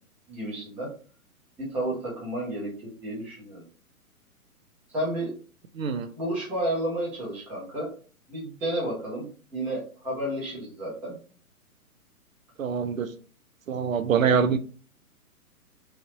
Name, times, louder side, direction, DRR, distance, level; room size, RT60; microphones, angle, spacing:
voice 1, 0.3-0.9 1.6-3.6 4.9-5.3 6.2-7.9 8.3-9.3 9.5-11.2, right 1 dB, 5° right, 0.5 m, -31 dB
voice 2, 5.8-6.1 12.6-13.1 13.7-14.6, right 6 dB, 65° right, 0.5 m, -24 dB
3.1 x 2.7 x 3.0 m
figure-of-eight pair, 125°, 45 cm